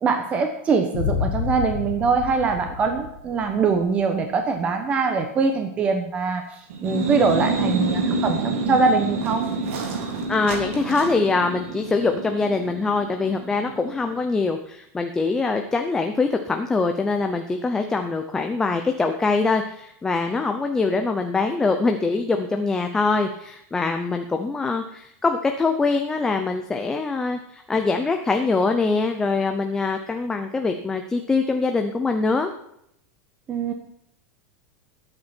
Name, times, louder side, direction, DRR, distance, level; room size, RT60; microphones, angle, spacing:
voice 1, 0.0-9.5 33.5-33.7, right 4 dB, 15° right, 5 dB, 1.0 m, -23 dB
sound 1, 0.9-3.9, left 8 dB, 70° left, 1.5 m, -29 dB
sound 2, 6.7-14.2, right 3 dB, 85° right, 2.4 m, -28 dB
sound 3, 6.9-7.0 7.4-7.5 9.1-11.4, right 4 dB, 65° right, 3.4 m, -37 dB
voice 2, 10.3-32.5, left 3 dB, 5° left, 5 dB, 0.6 m, -23 dB
20.5 x 8.8 x 4.5 m, 0.73 s
supercardioid pair, 175°, 8 cm